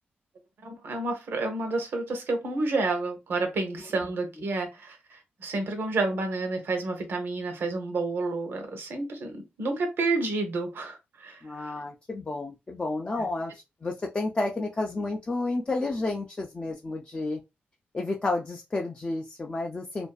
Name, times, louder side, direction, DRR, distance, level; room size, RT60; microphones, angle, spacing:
voice 1, 0.6-11.7, right 3 dB, 65° right, 0.8 m, -30 dB
voice 2, 11.4-17.4 17.9-20.1, left 2 dB, 25° left, 0.4 m, -31 dB
2.5 x 2.4 x 2.2 m
wide cardioid pair, 115°, 4 cm